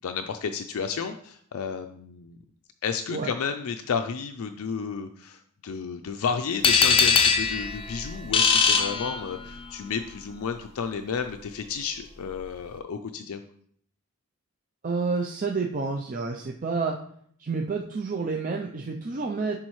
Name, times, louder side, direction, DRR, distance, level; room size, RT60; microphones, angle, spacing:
voice 1, 0.0-2.4 2.8-13.4, left 6 dB, 75° left, 6 dB, 0.4 m, -32 dB
sound 1, 6.6-9.7, left 5 dB, 25° left, 0.5 m, -22 dB
voice 2, 14.8-17.0 17.4-19.6, right 4 dB, 40° right, 1 dB, 0.5 m, -29 dB
10.5 x 3.8 x 3.1 m, 0.63 s
head